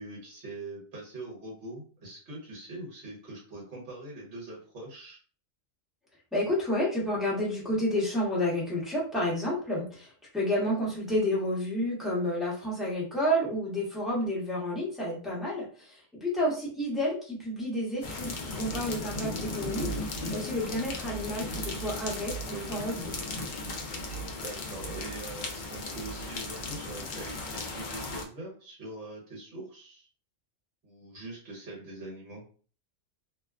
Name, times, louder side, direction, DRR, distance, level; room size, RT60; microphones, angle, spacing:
voice 1, 0.0-5.2 22.5-22.9 24.4-30.1 30.8-32.4, right 2 dB, 65° right, -4 dB, 1.4 m, -43 dB
voice 2, 6.3-23.1, left 1 dB, ahead, -7 dB, 0.8 m, -30 dB
sound 1, 18.0-28.2, left 2 dB, 60° left, 0.5 m, -36 dB
2.8 x 2.1 x 2.3 m, 0.41 s
omnidirectional pair, 1.3 m